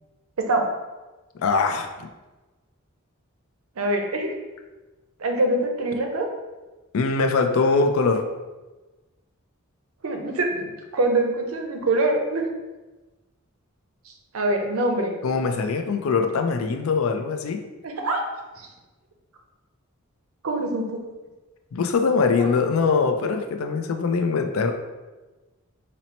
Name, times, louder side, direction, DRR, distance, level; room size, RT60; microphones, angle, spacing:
voice 1, 1.4-2.1 6.9-8.3 15.2-17.6 21.7-24.7, left 4 dB, 75° left, 5 dB, 0.4 m, -22 dB
voice 2, 3.8-4.3 5.2-6.3 10.0-12.5 14.1-15.1 17.8-18.2 18.6-18.7 20.4-21.1 22.4-22.5, right 2 dB, 85° right, 3 dB, 0.6 m, -24 dB
4.1 x 2.0 x 4.2 m, 1.2 s
head